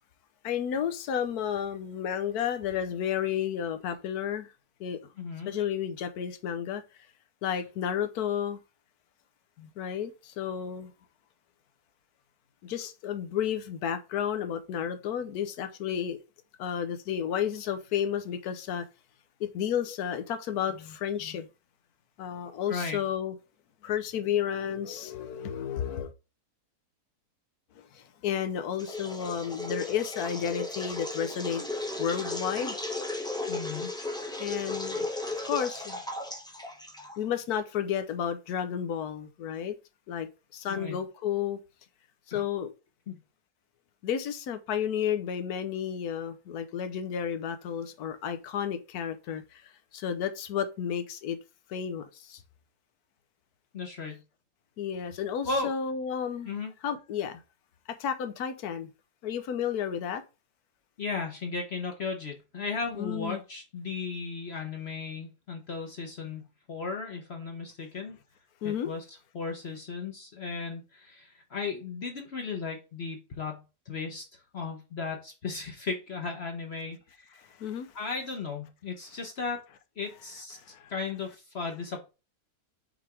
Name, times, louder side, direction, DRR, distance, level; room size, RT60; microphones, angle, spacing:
voice 1, 0.4-4.5 4.8-5.0 5.5-6.8 7.4-8.6 9.6-10.9 12.6-16.2 16.6-18.9 19.4-21.5 22.2-23.4 23.8-26.1 27.7-31.6 32.0-32.8 34.4-35.1 35.4-36.0 37.2-39.8 40.1-41.6 42.3-42.7 44.0-51.4 51.7-52.4 54.8-56.5 56.8-57.4 57.9-58.9 59.2-60.2 62.9-63.4 68.6-68.9 77.6-78.1 79.7-79.8 80.0-81.2, left 8 dB, 75° left, 1.3 m, -32 dB
voice 2, 5.2-5.5 22.7-23.0 33.5-33.9 40.6-41.0 42.3-42.4 43.1-43.2 53.7-54.2 55.4-55.7 56.5-56.7 61.0-66.4 66.7-68.2 68.6-69.0 69.3-77.5 77.9-79.6 80.0-80.6 80.9-82.1, left 4 dB, 45° left, 1.0 m, -36 dB
sound 1, 28.8-37.3, left 2 dB, 5° left, 0.6 m, -35 dB
5.8 x 3.4 x 4.8 m
omnidirectional pair, 1.7 m